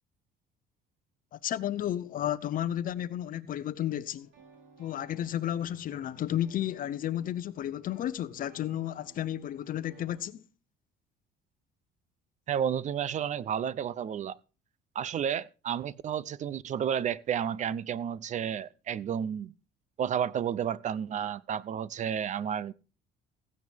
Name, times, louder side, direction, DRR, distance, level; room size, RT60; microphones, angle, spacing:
voice 1, 1.3-4.3 4.8-10.4, left 11 dB, 50° left, 0.7 m, -32 dB
sound 1, 4.1-10.3, right 4 dB, 80° right, 4.6 m, -58 dB
voice 2, 12.5-14.4 14.9-19.5 20.0-22.7, right 8 dB, 40° right, 0.5 m, -31 dB
15.5 x 9.3 x 3.5 m
cardioid pair, 115°, 18 cm